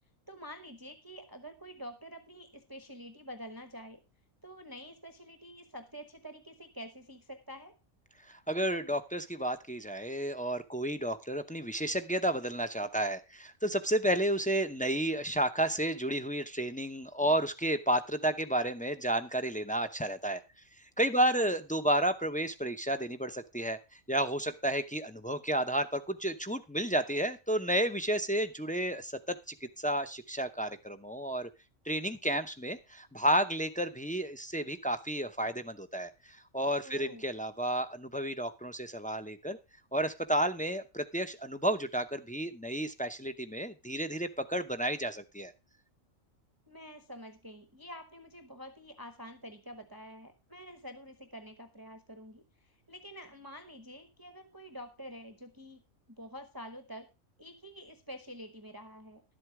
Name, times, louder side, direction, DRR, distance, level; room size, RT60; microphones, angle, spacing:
voice 1, 0.3-4.0 4.4-7.7 21.3-21.5 36.8-37.3 46.7-55.8 56.1-57.1 57.4-59.2, equal, 20° right, 6 dB, 1.0 m, -47 dB
voice 2, 8.3-20.4 21.0-23.8 24.1-31.5 31.9-39.6 39.9-45.5, right 1 dB, 10° left, 7 dB, 0.4 m, -31 dB
12.0 x 7.9 x 4.7 m, 0.27 s
omnidirectional pair, 1.4 m